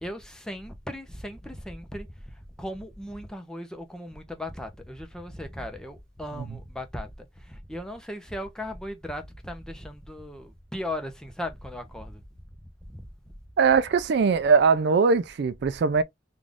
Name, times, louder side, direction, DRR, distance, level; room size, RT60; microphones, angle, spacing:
voice 1, 0.0-12.2 12.9-13.1, left 1 dB, 5° left, 0.6 m, -37 dB
voice 2, 13.6-16.0, right 5 dB, 55° right, 0.3 m, -21 dB
3.7 x 2.4 x 3.4 m
head